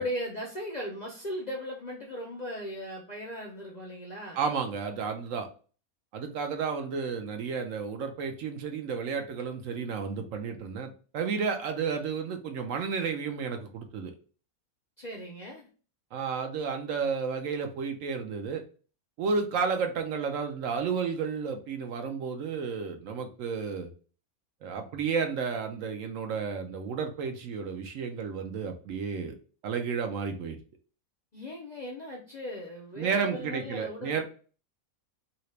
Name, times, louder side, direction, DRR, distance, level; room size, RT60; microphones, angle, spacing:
voice 1, 0.0-4.4 15.0-15.7 31.3-34.2, left 1 dB, 50° left, -1 dB, 0.5 m, -37 dB
voice 2, 4.4-5.5 6.1-14.1 16.1-18.6 19.2-23.9 24.6-29.3 29.6-30.6 33.0-34.2, right 5 dB, 70° right, 5 dB, 0.9 m, -32 dB
2.8 x 2.8 x 3.1 m, 0.38 s
omnidirectional pair, 1.5 m